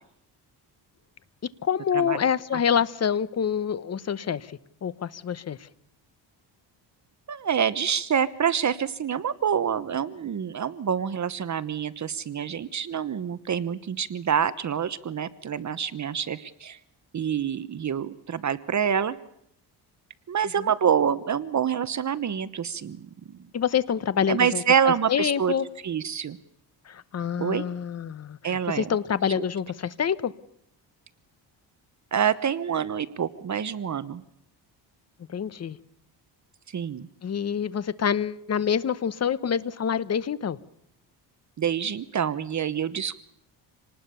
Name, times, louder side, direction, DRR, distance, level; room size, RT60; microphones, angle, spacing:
voice 1, 1.4-5.7 20.6-20.7 23.5-25.7 26.9-30.3 35.3-35.8 37.2-40.6, left 8 dB, 35° left, 1.0 m, -27 dB
voice 2, 7.3-16.8 17.1-19.2 20.3-23.4 24.3-25.5 25.8-26.4 27.4-27.6 28.4-28.9 29.4-29.5 32.1-34.2 36.7-37.1 41.6-43.2, right 8 dB, 40° right, 1.1 m, -26 dB
26.5 x 19.5 x 6.9 m
cardioid pair, 110°, 43 cm